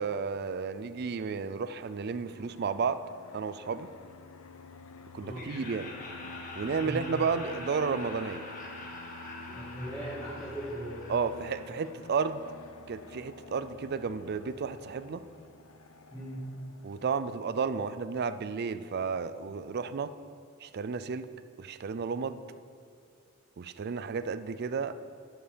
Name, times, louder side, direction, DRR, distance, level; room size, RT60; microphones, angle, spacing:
voice 1, 0.0-3.0 3.3-3.9 5.1-5.9 6.6-8.4 11.1-12.4 12.9-15.2 16.8-20.1 20.6-21.3 21.6-22.4 23.6-25.0, right 5 dB, 50° right, 13 dB, 0.4 m, -32 dB
Fixed-wing aircraft airplane, 2.3-17.5, left 3 dB, 75° left, 0.6 m, -49 dB
voice 2, 5.2-5.5 6.8-7.0 9.5-11.0 16.1-16.4, right 1 dB, 10° left, -10 dB, 2.2 m, -39 dB
Laughter, 5.3-12.3, left 2 dB, 40° left, 1.6 m, -45 dB
11.5 x 7.9 x 5.1 m, 2.3 s
head